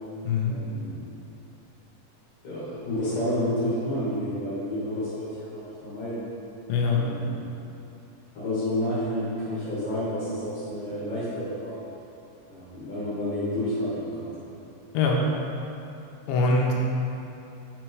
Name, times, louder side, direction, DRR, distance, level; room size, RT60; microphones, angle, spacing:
voice 1, 0.5-1.0 2.4-6.2 6.9-7.4 8.3-11.8 12.5-14.3, left 1 dB, 50° left, -10 dB, 2.2 m, -30 dB
voice 2, 6.7-7.0 14.9-15.2 16.3-16.7, left 3 dB, 80° left, -1 dB, 2.4 m, -22 dB
5.8 x 4.5 x 4.7 m, 2.9 s
omnidirectional pair, 4.3 m